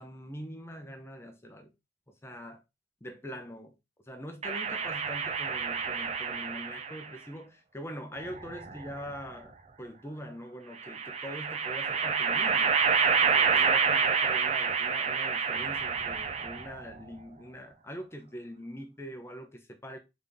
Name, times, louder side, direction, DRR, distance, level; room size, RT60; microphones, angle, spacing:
voice 1, 0.0-1.7 2.2-2.6 3.0-3.7 4.1-12.7 13.2-20.0, equal, 15° left, 0.7 m, -43 dB
sound 1, 4.4-7.1 8.2-9.2 10.8-16.8, right 5 dB, 35° right, 0.5 m, -28 dB
4.0 x 3.5 x 3.5 m
head